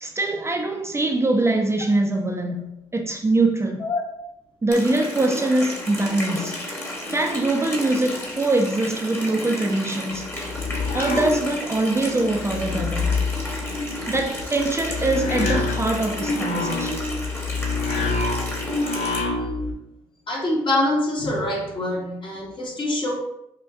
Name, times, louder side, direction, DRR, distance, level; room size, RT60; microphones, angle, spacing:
voice 1, 0.0-3.9 4.6-6.6 7.1-10.3 10.9-13.2 14.1-17.0, right 2 dB, 20° right, 0.5 m, -23 dB
Water tap faucet, 4.7-19.2, left 1 dB, 15° left, 1.2 m, -33 dB
sound 1, 10.1-12.0 12.3-19.7, left 3 dB, 65° left, 0.8 m, -27 dB
voice 2, 20.3-23.2, left 1 dB, 40° left, 1.3 m, -25 dB
5.5 x 2.2 x 2.6 m
supercardioid pair, 65°, 13 cm